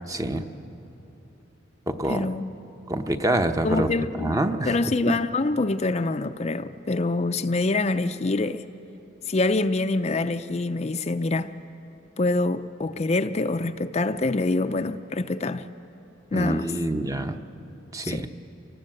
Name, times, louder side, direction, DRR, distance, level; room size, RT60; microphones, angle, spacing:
voice 1, 0.1-0.4 1.9-2.3 2.9-3.9 4.2-4.7 16.3-17.4 17.9-18.3, right 1 dB, 20° right, 0.8 m, -26 dB
voice 2, 2.1-2.5 3.6-4.4 4.6-8.6 9.3-11.5 12.2-15.6 16.3-16.7 18.0-18.3, left 2 dB, 35° left, 0.5 m, -25 dB
26.5 x 19.0 x 7.8 m
head